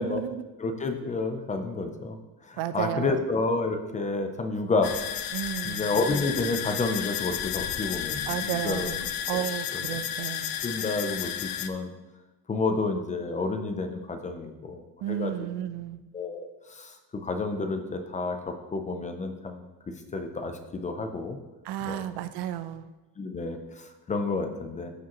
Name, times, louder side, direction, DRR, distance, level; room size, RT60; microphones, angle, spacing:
voice 1, 0.0-0.4 2.6-3.2 5.3-5.9 8.3-10.6 15.0-16.0 21.6-22.9, right 11 dB, 85° right, 12 dB, 0.6 m, -33 dB
voice 2, 0.6-2.2 2.4-4.9 5.6-8.9 9.3-9.5 9.7-10.0 10.6-11.9 12.5-15.3 16.1-19.6 20.1-21.4 21.8-22.1 23.2-24.9, left 3 dB, 20° left, 6 dB, 0.4 m, -30 dB
sound 1, 4.8-11.7, left 10 dB, 60° left, 0.6 m, -32 dB
14.0 x 4.9 x 3.0 m, 1.1 s
cardioid pair, 175°, 39 cm